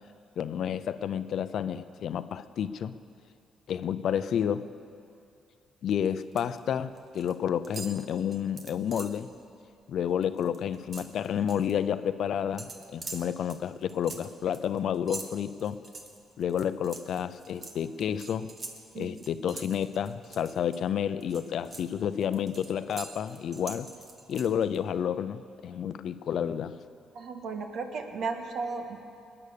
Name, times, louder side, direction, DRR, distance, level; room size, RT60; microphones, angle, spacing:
voice 1, 0.4-3.0 3.7-4.7 5.8-9.3 9.9-15.8 16.4-18.5 19.0-23.9 24.3-26.7, left 8 dB, 65° left, 13 dB, 0.6 m, -30 dB
sound 1, 5.9-6.6 6.9-7.3 7.6-9.2 9.6-9.8 10.1-11.7 12.6-20.8 21.2-24.8, right 3 dB, 40° right, 1.6 m, -45 dB
voice 2, 27.1-29.0, right 4 dB, 65° right, 5 dB, 1.6 m, -34 dB
19.5 x 9.7 x 6.9 m, 2.5 s
cardioid pair, 90°, 0 cm